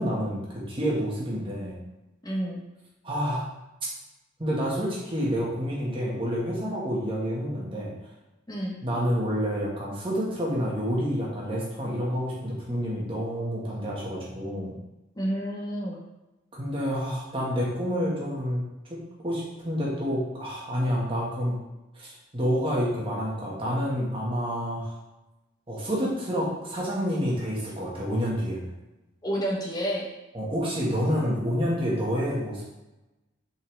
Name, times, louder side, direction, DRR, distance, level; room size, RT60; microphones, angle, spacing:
voice 1, 0.0-1.8 3.0-3.4 4.4-7.9 8.8-14.7 16.5-18.6 18.9-21.6 21.9-22.1 22.3-24.9 25.7-28.7 30.3-32.6, equal, 25° right, -5 dB, 1.6 m, -28 dB
voice 2, 2.2-2.6 8.5-8.8 15.2-16.0 29.2-30.1, equal, 20° left, -2 dB, 1.1 m, -29 dB
6.1 x 4.5 x 3.4 m, 1.0 s
head